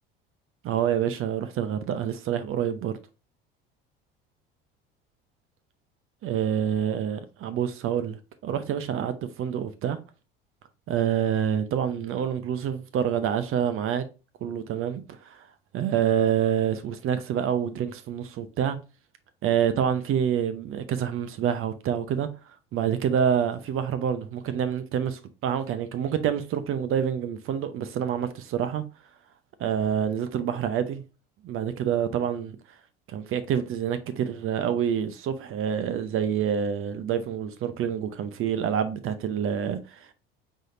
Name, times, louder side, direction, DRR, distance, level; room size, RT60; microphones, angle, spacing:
voice 1, 0.6-2.9 6.2-10.0 10.9-14.0 14.4-15.5 15.7-18.8 19.4-22.3 22.7-28.8 29.6-31.0 31.4-32.6 33.1-40.1, right 8 dB, 45° right, 0.8 m, -27 dB
5.4 x 3.6 x 2.7 m
hypercardioid pair, 70°, 29 cm